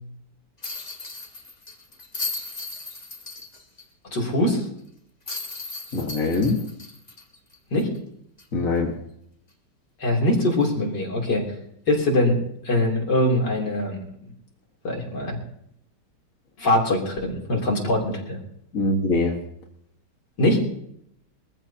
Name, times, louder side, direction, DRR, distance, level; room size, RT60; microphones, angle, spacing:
sound 1, 0.6-3.8 4.2-4.3 5.3-8.0 8.4-8.5 10.6-10.8, left 3 dB, 25° left, 1.6 m, -36 dB
voice 1, 4.1-4.6 7.7-7.9 10.0-11.5 11.9-12.4 12.7-14.0 14.8-15.4 16.6-18.4 20.4-20.7, left 1 dB, 80° left, -1 dB, 4.0 m, -22 dB
voice 2, 5.9-6.6 8.5-8.9 18.7-19.3, left 3 dB, 50° left, -1 dB, 2.1 m, -23 dB
23.5 x 14.5 x 2.9 m, 0.72 s
omnidirectional pair, 1.9 m